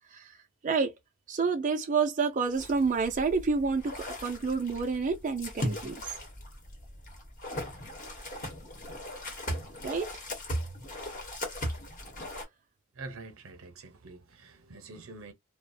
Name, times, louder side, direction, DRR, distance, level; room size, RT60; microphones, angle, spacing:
voice 1, 1.3-3.9 4.2-6.0 9.8-10.1, right 4 dB, 40° right, 0.4 m, -28 dB
sound 1, 2.5-12.4, left 1 dB, 40° left, 1.0 m, -38 dB
voice 2, 12.9-15.3, right 3 dB, 80° right, 0.7 m, -46 dB
2.3 x 2.1 x 2.5 m
head